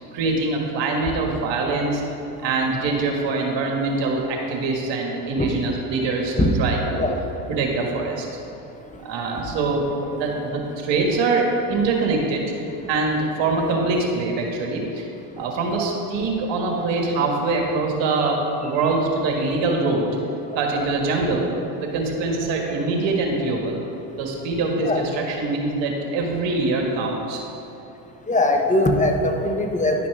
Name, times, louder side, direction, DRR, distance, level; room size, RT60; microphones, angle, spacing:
voice 1, 0.1-2.0 2.4-7.1 7.5-8.3 9.0-12.5 12.9-15.0 15.4-20.2 20.5-21.5 21.8-23.8 24.2-27.4, right 3 dB, 65° right, 0 dB, 1.8 m, -24 dB
voice 2, 28.3-30.1, left 1 dB, 15° left, 3 dB, 1.1 m, -21 dB
11.0 x 5.9 x 4.9 m, 3.0 s
supercardioid pair, 80°, 47 cm